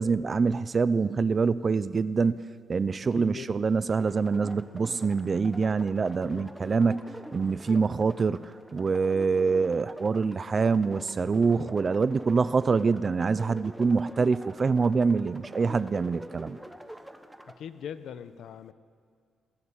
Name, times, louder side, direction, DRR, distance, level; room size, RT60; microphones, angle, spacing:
voice 1, 0.0-2.4 2.7-7.0 7.3-16.6, right 4 dB, 30° right, 16 dB, 0.6 m, -25 dB
voice 2, 3.1-3.5 6.2-6.5 17.4-18.7, left 8 dB, 70° left, 11 dB, 1.2 m, -41 dB
sound 1, 3.9-17.6, equal, 5° right, 1.5 m, -45 dB
27.0 x 19.0 x 8.8 m, 2.2 s
cardioid pair, 130°, 0 cm